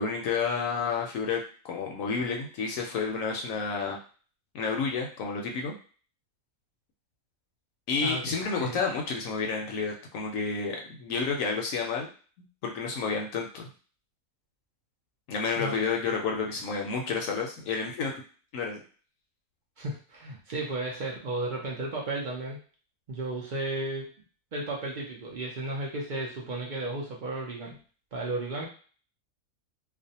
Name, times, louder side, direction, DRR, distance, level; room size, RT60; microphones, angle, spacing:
voice 1, 0.0-1.4 1.7-4.0 4.5-5.7 7.9-12.1 12.6-13.7 15.3-18.2 18.5-18.8, left 5 dB, 70° left, 1 dB, 0.9 m, -30 dB
voice 2, 19.8-22.6 23.1-24.1 24.5-27.8 28.1-28.7, right 2 dB, 60° right, -3 dB, 0.5 m, -34 dB
2.5 x 2.1 x 2.7 m, 0.40 s
omnidirectional pair, 1.5 m